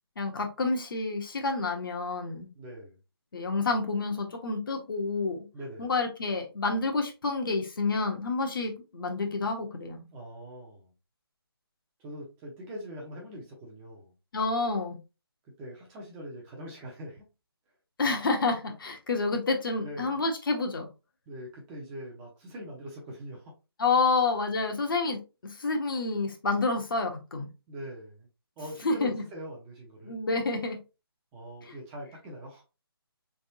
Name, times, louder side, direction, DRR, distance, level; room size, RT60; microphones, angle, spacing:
voice 1, 0.2-2.5 3.3-5.5 5.8-10.0 14.3-15.0 18.0-20.9 23.8-27.5 28.8-29.2 30.0-30.8 31.7-31.8, left 3 dB, 55° left, 3 dB, 1.1 m, -29 dB
voice 2, 2.5-3.0 5.5-5.9 10.1-10.9 12.0-14.1 15.4-17.3 19.8-20.2 21.3-23.5 27.7-28.3 28.6-30.2 31.3-32.6, equal, 10° right, -2 dB, 0.7 m, -42 dB
3.5 x 3.5 x 2.7 m, 0.29 s
hypercardioid pair, 160°, 13 cm